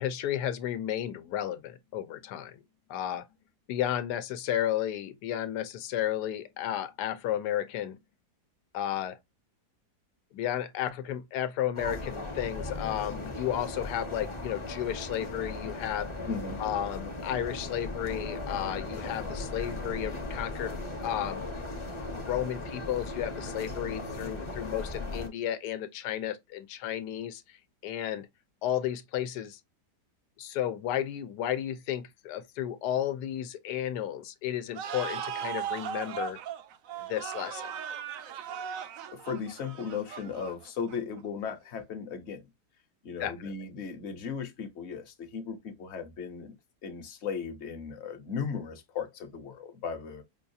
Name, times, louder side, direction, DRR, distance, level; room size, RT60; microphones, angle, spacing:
voice 1, 0.0-2.6 2.9-3.3 3.7-8.0 8.7-9.2 10.3-16.1 16.6-21.4 22.3-27.6 27.8-28.3 28.6-29.6 30.4-36.4 37.1-37.7 43.2-43.5, left 11 dB, 80° left, 1.2 m, -33 dB
sound 1, 11.7-25.3, left 2 dB, 25° left, 0.6 m, -37 dB
voice 2, 16.3-16.6 39.1-42.4 43.0-46.5 46.8-50.2, left 6 dB, 50° left, 1.0 m, -36 dB
sound 2, 34.7-41.2, right 8 dB, 70° right, 0.9 m, -38 dB
5.3 x 2.3 x 2.6 m
omnidirectional pair, 1.7 m